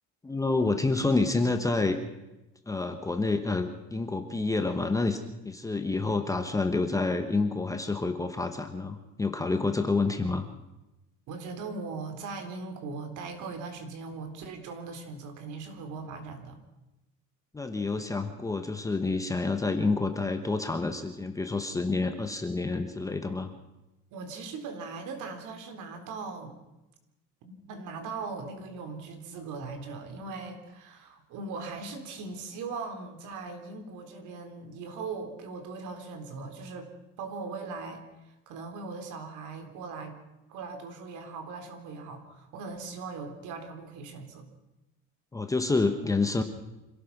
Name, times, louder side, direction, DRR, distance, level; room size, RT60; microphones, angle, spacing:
voice 1, 0.2-2.0 2.7-10.5 17.5-23.5 45.3-46.4, left 3 dB, 10° left, 7 dB, 1.1 m, -28 dB
voice 2, 11.3-16.6 24.1-26.6 27.4-36.9 37.2-40.2 40.5-44.5, right 4 dB, 60° right, 6 dB, 3.8 m, -39 dB
26.5 x 17.0 x 6.0 m, 1.0 s
cardioid pair, 175°, 34 cm